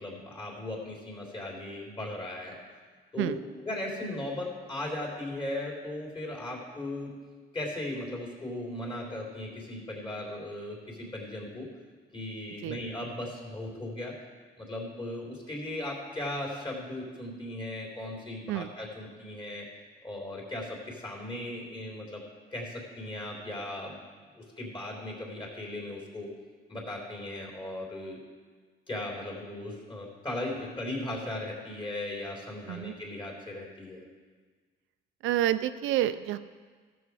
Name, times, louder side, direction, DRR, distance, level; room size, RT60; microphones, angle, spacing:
voice 1, 0.0-2.6 3.1-3.3 3.6-7.1 7.5-11.7 12.1-14.1 14.6-19.7 20.0-22.2 22.5-24.0 24.4-26.3 26.7-28.2 28.9-34.0, left 1 dB, 25° left, -2 dB, 3.4 m, -37 dB
voice 2, 35.2-36.4, right 12 dB, 85° right, 11 dB, 0.5 m, -28 dB
14.0 x 7.0 x 4.8 m, 1.5 s
cardioid pair, 90°, 20 cm